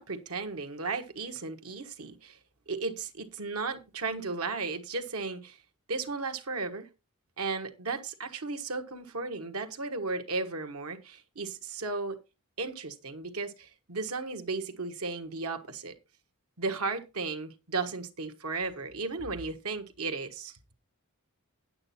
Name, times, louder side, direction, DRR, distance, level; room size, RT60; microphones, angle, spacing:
voice 1, 0.0-2.4 2.7-5.6 5.9-6.9 7.4-12.2 12.6-15.9 16.6-20.6, right 4 dB, 80° right, 1.4 m, -35 dB
9.4 x 8.8 x 4.3 m
head